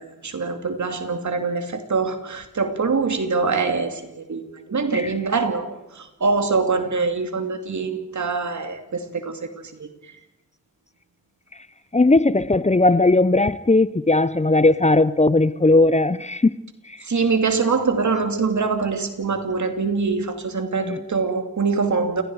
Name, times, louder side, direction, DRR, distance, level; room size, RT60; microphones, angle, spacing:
voice 1, 0.0-9.5 9.8-9.9 17.0-22.2, right 4 dB, 70° right, 2.8 m, -24 dB
voice 2, 11.9-16.5 20.9-21.0, left 2 dB, 20° left, 0.8 m, -17 dB
28.5 x 19.5 x 4.9 m
cardioid pair, 40°, 30 cm